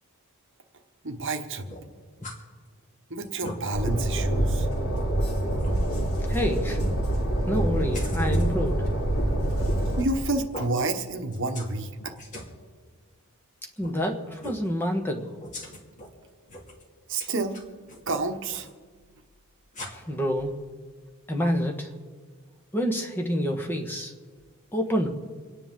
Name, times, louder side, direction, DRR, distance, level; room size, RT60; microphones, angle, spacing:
voice 1, 1.0-1.6 3.1-4.7 10.0-12.1 17.1-17.6 18.1-18.7, right 2 dB, 55° right, 6 dB, 1.1 m, -29 dB
sound 1, 1.7-2.4 2.8-2.9 3.2-3.6 4.2-4.3 4.9-5.0 5.6-5.8 7.9-8.5 9.8-10.2 10.5-10.7 11.3-11.7 12.0-12.5 13.8-13.9 14.4-14.7 15.4-16.1 16.5-16.8 17.2-18.0 18.5-18.7 19.7-19.9, left 1 dB, 35° left, 2.6 m, -40 dB
Train, 3.7-10.0, right 1 dB, 70° left, 3.4 m, -25 dB
voice 2, 6.3-6.8 7.5-8.9 13.8-15.4 19.9-20.5 21.3-21.9 22.7-24.1 24.7-25.1, equal, 10° left, 3 dB, 1.3 m, -27 dB
28.5 x 10.0 x 3.7 m, 1.5 s
head